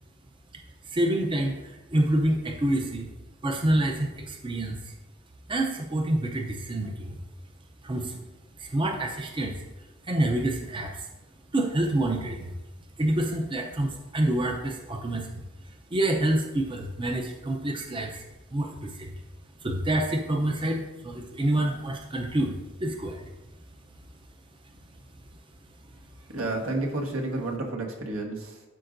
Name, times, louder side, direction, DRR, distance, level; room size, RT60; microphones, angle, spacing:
voice 1, 0.8-3.1 3.4-4.9 5.5-7.2 7.8-8.2 8.6-9.6 10.0-11.1 11.5-12.5 13.0-18.2 18.5-19.1 19.6-22.5 22.8-23.3, right 1 dB, 25° right, 2 dB, 0.6 m, -27 dB
voice 2, 26.3-28.6, right 2 dB, 80° right, -1 dB, 1.4 m, -31 dB
12.5 x 5.0 x 2.6 m, 1.1 s
head